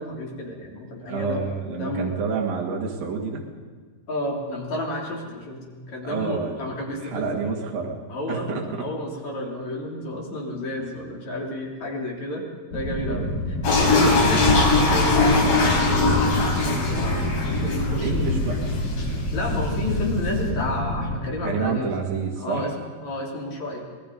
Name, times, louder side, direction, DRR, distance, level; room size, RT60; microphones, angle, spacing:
voice 1, 0.0-1.4 1.7-2.1 4.1-7.3 8.1-15.9 16.1-18.4 19.3-21.9 22.3-22.7 23.0-23.9, left 1 dB, 50° left, -1 dB, 4.7 m, -31 dB
voice 2, 1.0-3.4 6.0-6.6 7.0-8.0 8.3-8.9 13.1-13.3 18.0-18.6 21.4-22.7, right 5 dB, 75° right, 0 dB, 4.0 m, -28 dB
sound 1, 12.7-21.2, left 1 dB, 30° left, 3.1 m, -29 dB
sound 2, 13.6-20.5, left 3 dB, 85° left, 5.9 m, -22 dB
26.0 x 19.5 x 5.4 m, 1.5 s
omnidirectional pair, 4.1 m